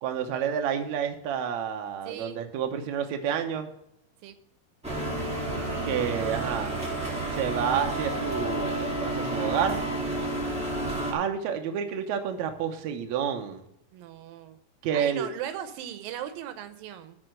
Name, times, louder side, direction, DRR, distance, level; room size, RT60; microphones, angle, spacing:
voice 1, 0.0-3.7 5.8-6.8 7.3-9.9 11.1-13.6 14.8-15.3, right 8 dB, 65° right, 4 dB, 2.1 m, -29 dB
voice 2, 2.1-2.4 4.2-4.4 13.9-14.6 14.9-17.2, right 11 dB, 90° right, 10 dB, 2.5 m, -38 dB
sound 1, 4.8-11.1, right 2 dB, ahead, 1.8 m, -30 dB
12.5 x 4.2 x 7.7 m, 0.78 s
omnidirectional pair, 3.9 m